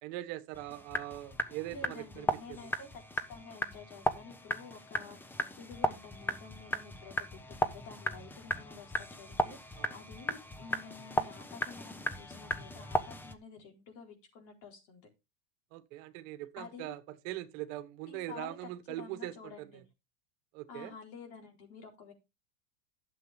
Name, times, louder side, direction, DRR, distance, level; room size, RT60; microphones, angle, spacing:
voice 1, 0.0-2.3 9.8-9.9 15.7-19.7 20.5-20.9, right 15 dB, 55° right, 1.4 m, -41 dB
sound 1, 0.5-13.3, left 1 dB, 5° left, 0.4 m, -36 dB
voice 2, 1.7-3.0 3.3-15.1 16.6-16.9 18.1-18.7 19.0-19.8 20.7-22.1, left 5 dB, 50° left, 4.3 m, -50 dB
11.5 x 7.4 x 3.6 m
supercardioid pair, 140°, 45 cm